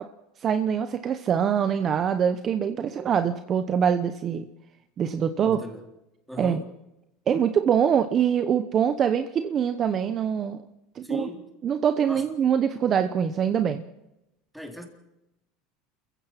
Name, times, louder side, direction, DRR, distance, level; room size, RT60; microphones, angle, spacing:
voice 1, 0.4-4.5 5.0-5.6 6.4-6.6 7.3-10.6 10.9-11.3 11.6-13.8, right 8 dB, 35° right, 1.0 m, -24 dB
voice 2, 5.4-5.9 6.3-6.7 11.0-11.5 12.1-12.3 14.5-14.9, left 1 dB, ahead, 3.7 m, -37 dB
28.5 x 15.5 x 5.9 m
supercardioid pair, 135°, 0 cm